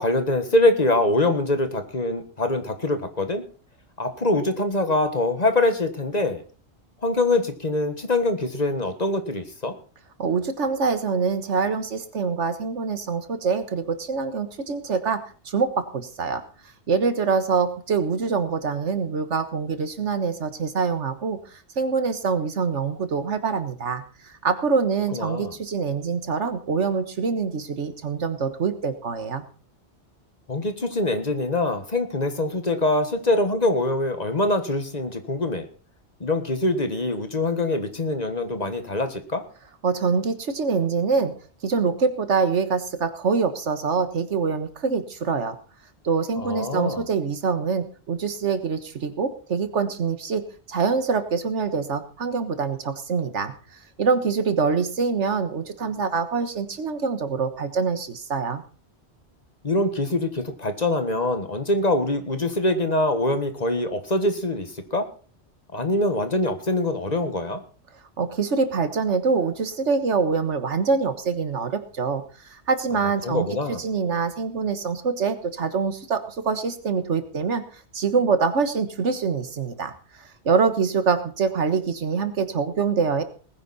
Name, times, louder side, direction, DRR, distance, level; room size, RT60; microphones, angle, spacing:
voice 1, 0.0-3.4 4.0-6.4 7.0-9.7 25.1-25.5 30.5-35.7 36.2-39.4 46.4-47.0 59.6-65.1 65.7-67.6 73.2-73.8, left 2 dB, 35° left, 8 dB, 1.6 m, -24 dB
voice 2, 10.2-15.2 15.5-16.4 16.9-29.4 39.8-41.3 41.6-45.6 46.0-50.4 50.7-53.5 54.0-58.6 68.2-72.2 72.5-73.5 73.8-77.6 77.9-79.9 80.2-83.2, right 5 dB, 85° right, 10 dB, 1.7 m, -25 dB
19.5 x 10.0 x 4.2 m, 0.38 s
omnidirectional pair, 1.2 m